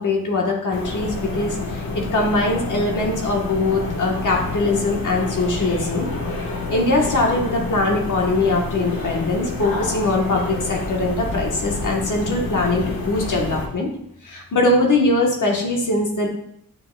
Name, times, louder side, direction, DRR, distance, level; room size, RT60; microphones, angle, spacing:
voice 1, 0.0-6.1 6.7-13.9 14.2-16.3, left 2 dB, 60° left, 0 dB, 1.2 m, -21 dB
sound 1, 0.7-13.7, left 3 dB, 80° left, 1.3 m, -28 dB
8.2 x 6.3 x 2.2 m, 0.72 s
wide cardioid pair, 115°, 35 cm